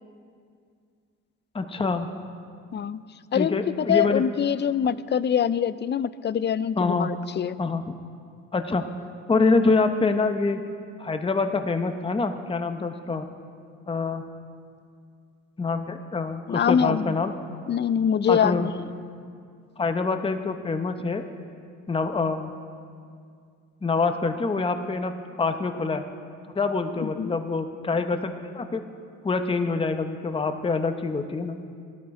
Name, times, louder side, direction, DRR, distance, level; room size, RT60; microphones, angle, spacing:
voice 1, 1.5-2.1 3.3-4.2 6.8-7.1 7.6-7.9 8.5-8.9 9.3-10.6 11.0-13.2 13.9-14.3 15.6-17.3 18.3-18.7 19.8-21.2 21.9-22.5 23.8-26.1 26.5-28.8 29.2-31.6, left 3 dB, 20° left, 7 dB, 0.8 m, -25 dB
voice 2, 2.7-3.0 3.3-7.6 16.5-17.2 17.7-18.8 27.0-27.4, left 8 dB, 35° left, 16 dB, 0.4 m, -24 dB
16.5 x 12.5 x 4.8 m, 2.2 s
cardioid pair, 90°, 30 cm